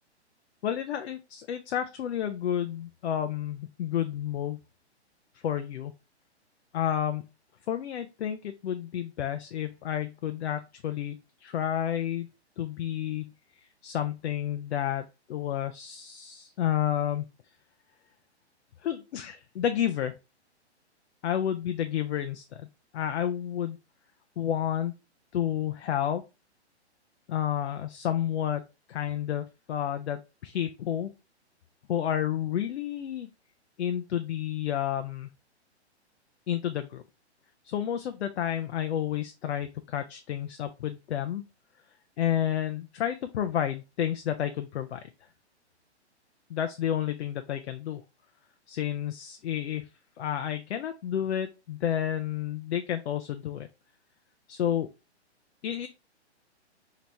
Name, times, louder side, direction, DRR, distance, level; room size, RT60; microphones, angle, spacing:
voice 1, 0.6-4.6 5.4-5.9 6.7-7.2 7.7-12.3 12.6-13.3 13.8-17.3 18.8-20.1 21.2-22.7 22.9-23.8 24.4-24.9 25.3-26.2 27.3-28.6 28.9-31.1 31.9-33.3 33.8-35.3 36.5-37.0 37.6-41.4 42.2-45.0 46.5-48.0 48.7-49.9 50.2-53.7 54.5-54.9 55.6-55.9, left 10 dB, 70° left, 8 dB, 0.5 m, -30 dB
2.9 x 2.8 x 3.3 m, 0.28 s
hypercardioid pair, 130°, 34 cm